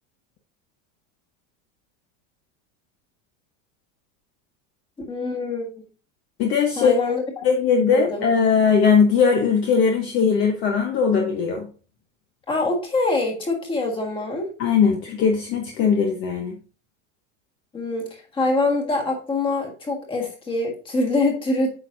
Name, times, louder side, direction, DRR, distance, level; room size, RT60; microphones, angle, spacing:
voice 1, 5.1-5.7 6.8-7.5 7.9-8.3 12.5-14.5 17.7-21.7, left 2 dB, 15° left, 2 dB, 1.6 m, -24 dB
voice 2, 6.4-6.9 7.4-11.7 14.6-16.6, left 6 dB, 30° left, 3 dB, 0.9 m, -19 dB
9.0 x 6.0 x 2.6 m, 0.37 s
supercardioid pair, 170°, 38 cm